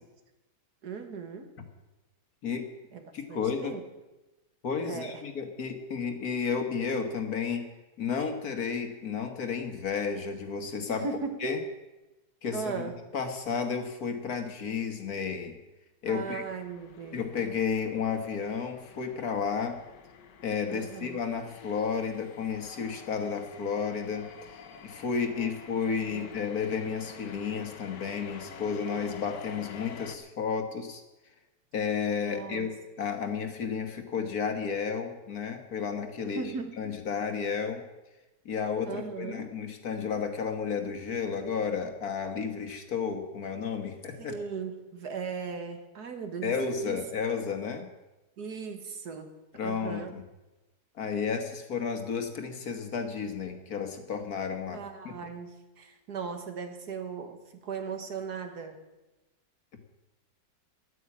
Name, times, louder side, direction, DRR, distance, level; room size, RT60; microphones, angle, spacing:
voice 1, 0.8-1.5 2.9-3.8 4.8-5.2 10.9-11.4 12.5-13.0 16.1-17.2 20.7-21.2 25.3-25.5 25.9-26.4 32.2-32.7 36.2-36.8 38.9-39.5 44.2-46.6 46.8-47.0 48.4-49.3 49.6-50.2 54.7-58.8, right 5 dB, 65° right, 7 dB, 1.9 m, -38 dB
voice 2, 3.1-3.7 4.6-7.7 8.0-11.1 11.4-11.6 12.4-15.6 16.0-16.4 17.1-19.8 20.4-24.3 24.8-31.0 31.7-36.4 36.8-37.8 38.5-44.3 46.4-47.9 49.6-50.2 51.0-54.8 55.1-55.2, left 6 dB, 60° left, 6 dB, 1.8 m, -32 dB
sound 1, 16.4-30.2, left 6 dB, 80° left, 1.6 m, -48 dB
11.5 x 9.6 x 8.5 m, 1.1 s
omnidirectional pair, 1.8 m